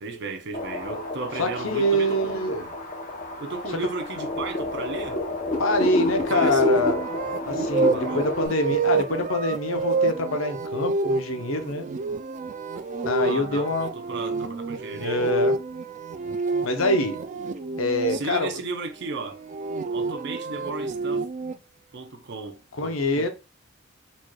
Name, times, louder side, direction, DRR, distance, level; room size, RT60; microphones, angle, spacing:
voice 1, 0.0-2.5 3.4-5.2 6.2-6.7 7.9-8.3 13.2-15.2 18.1-19.4 19.9-21.3 21.9-23.3, right 3 dB, 60° right, 0.7 m, -35 dB
sound 1, 0.5-8.5, left 2 dB, 40° left, 0.8 m, -30 dB
voice 2, 1.4-2.7 5.6-7.0 7.5-11.9 13.1-13.9 14.9-15.5 16.6-17.2 17.8-18.5 22.8-23.3, left 1 dB, 80° left, 0.7 m, -25 dB
sound 2, 6.3-18.2 19.3-21.5, right 3 dB, 40° right, 0.3 m, -28 dB
4.2 x 3.1 x 2.2 m
head